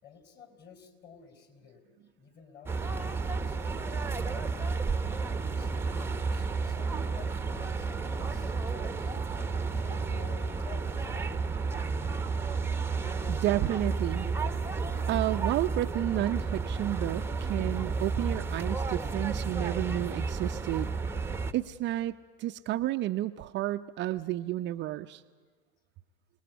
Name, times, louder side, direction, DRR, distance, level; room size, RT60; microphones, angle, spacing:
voice 1, 0.0-1.8 2.2-4.8 5.5-9.1 9.7-11.5, left 7 dB, 30° left, 6 dB, 4.4 m, -52 dB
sound 1, 2.7-21.5, right 4 dB, 5° right, 1.0 m, -32 dB
voice 2, 13.3-14.3 15.1-20.9 21.5-25.2, right 14 dB, 35° right, 7 dB, 0.6 m, -31 dB
27.5 x 19.0 x 8.4 m, 1.5 s
hypercardioid pair, 95°, 34 cm